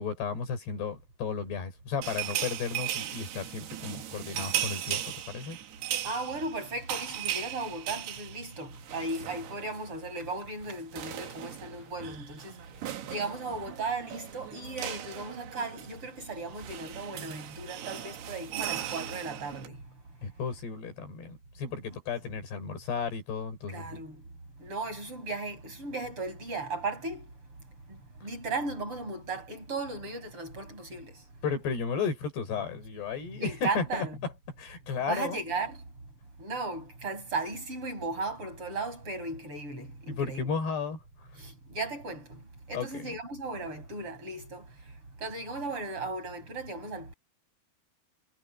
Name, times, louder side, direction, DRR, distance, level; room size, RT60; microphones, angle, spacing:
voice 1, 0.0-5.6 20.2-24.0 31.4-34.3 34.6-35.4 40.1-41.0 42.7-43.1, left 5 dB, 80° left, 6.9 m, -34 dB
sound 1, 2.0-9.9 10.2-10.4 10.6-19.7, right 11 dB, 75° right, 3.8 m, -37 dB
voice 2, 6.0-12.5 13.0-19.8 23.7-24.2 24.6-27.3 27.9-31.2 33.4-34.2 35.1-35.8 36.4-40.5 41.4-42.4 42.7-44.6 45.2-47.1, right 3 dB, 30° right, 7.9 m, -36 dB
omnidirectional pair, 4.7 m